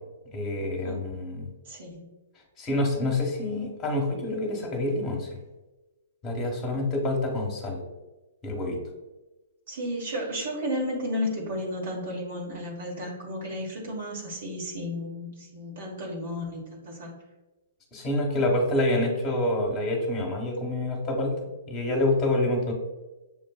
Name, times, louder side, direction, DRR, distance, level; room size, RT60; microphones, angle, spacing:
voice 1, 0.3-1.5 2.6-5.3 6.2-7.8 8.4-8.8 17.9-21.4 21.7-22.7, left 1 dB, 20° left, 0 dB, 1.2 m, -27 dB
voice 2, 1.6-2.0 9.7-17.1, left 1 dB, 60° right, -3 dB, 1.4 m, -33 dB
7.2 x 2.5 x 2.3 m, 1.1 s
hypercardioid pair, 125°, 0 cm